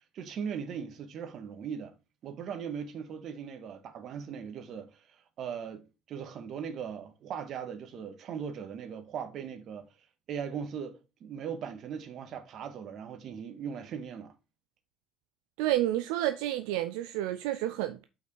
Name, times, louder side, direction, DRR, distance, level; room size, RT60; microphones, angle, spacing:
voice 1, 0.1-1.9 2.2-5.1 5.4-9.9 10.3-14.3, right 7 dB, 55° right, 1.6 m, -39 dB
voice 2, 15.6-18.0, right 14 dB, 80° right, 0.5 m, -30 dB
5.7 x 4.8 x 6.1 m
supercardioid pair, 90°, 0 cm